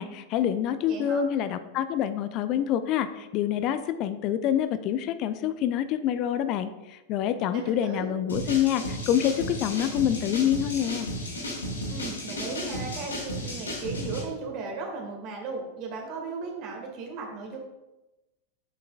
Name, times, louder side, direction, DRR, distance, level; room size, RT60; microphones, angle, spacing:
voice 1, 0.0-11.1, left 10 dB, 40° left, 11 dB, 0.4 m, -27 dB
voice 2, 0.8-1.3 7.5-8.1 11.9-17.6, right 4 dB, 40° right, 1 dB, 1.7 m, -36 dB
sound 1, 8.3-14.2, equal, 75° left, 2.1 m, -34 dB
8.1 x 5.8 x 2.4 m, 1.0 s
figure-of-eight pair, 90°, 0 cm